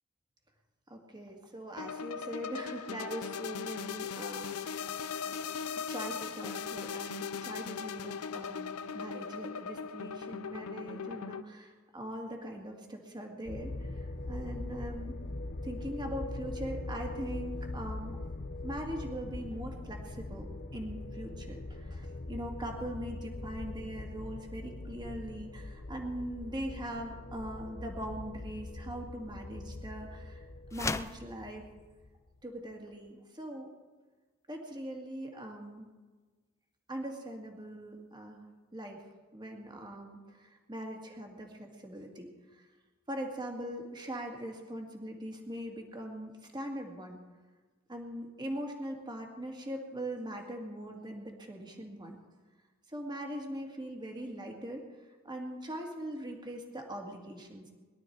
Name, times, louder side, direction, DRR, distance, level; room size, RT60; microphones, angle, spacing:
voice 1, 0.9-5.0 5.9-15.2 15.6-18.2 18.6-30.5 30.7-31.6 32.4-33.7 34.5-35.9 36.9-38.4 38.7-39.0 39.3-42.7 43.1-47.2 47.9-52.2 52.9-57.7, right 1 dB, 20° right, 2 dB, 2.2 m, -41 dB
sound 1, 1.8-11.4, left 6 dB, 85° left, 0.6 m, -39 dB
sound 2, 13.5-32.4, left 2 dB, 45° left, 1.0 m, -42 dB
sound 3, 30.7-31.3, left 3 dB, 15° left, 0.4 m, -34 dB
22.0 x 12.0 x 4.7 m, 1.3 s
head